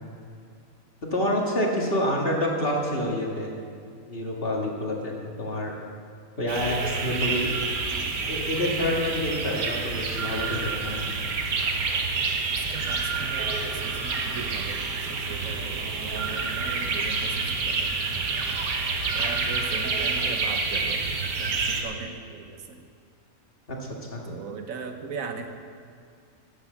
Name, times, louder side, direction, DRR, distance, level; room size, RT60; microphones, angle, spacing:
voice 1, 1.0-3.5 4.1-5.7 6.4-7.7 8.3-11.1 23.7-23.8 24.1-24.2, left 1 dB, 40° left, -1 dB, 1.9 m, -27 dB
sound 1, 6.5-21.8, right 4 dB, 90° right, 1.6 m, -28 dB
voice 2, 12.7-14.8 15.1-17.9 19.1-21.0 21.4-22.8 24.2-25.5, right 5 dB, 70° right, 6 dB, 1.3 m, -38 dB
12.0 x 7.6 x 7.6 m, 2.3 s
omnidirectional pair, 1.5 m